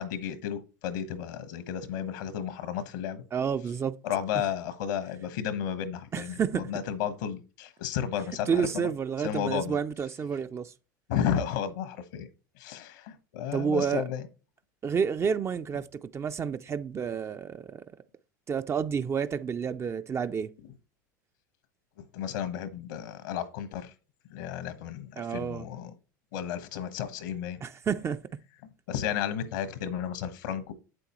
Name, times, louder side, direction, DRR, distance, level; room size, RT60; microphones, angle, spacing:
voice 1, 0.0-3.2 4.0-8.9 9.2-9.8 11.1-12.3 12.6-14.3 22.0-23.9 24.3-25.9 26.3-27.6 28.9-30.7, left 9 dB, 70° left, 1.2 m, -33 dB
voice 2, 3.3-4.0 6.1-6.7 8.5-10.7 13.5-14.0 14.8-17.8 18.5-20.5 25.2-25.6 27.6-28.2, right 6 dB, 25° right, 0.5 m, -30 dB
8.2 x 7.7 x 3.0 m
hypercardioid pair, 80°, 10 cm